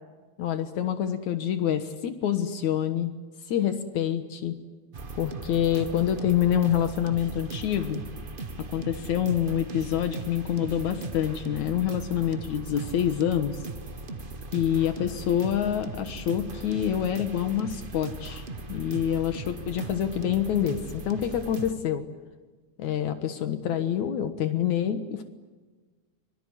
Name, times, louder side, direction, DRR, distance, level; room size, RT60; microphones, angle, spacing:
voice 1, 0.4-3.1 3.5-4.6 5.2-8.0 8.6-13.6 14.5-22.0 22.8-25.2, left 10 dB, 75° left, 8 dB, 2.7 m, -27 dB
sound 1, 4.9-21.7, right 3 dB, 40° right, 0.7 m, -38 dB
25.0 x 23.5 x 10.0 m, 1.3 s
omnidirectional pair, 3.4 m